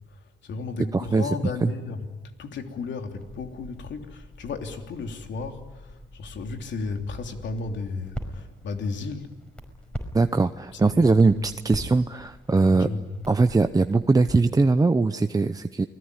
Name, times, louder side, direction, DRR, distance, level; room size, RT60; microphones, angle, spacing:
voice 1, 0.0-2.1 2.4-9.4 10.7-11.6 12.7-13.1, left 4 dB, 65° left, 5 dB, 3.2 m, -34 dB
voice 2, 0.9-1.3 1.6-1.7 10.1-12.9 13.3-15.9, right 3 dB, 20° right, 9 dB, 0.8 m, -21 dB
Crackle, 3.2-14.0, equal, 5° left, 5.4 m, -42 dB
29.0 x 20.0 x 9.7 m, 1.2 s
cardioid pair, 90°, 20 cm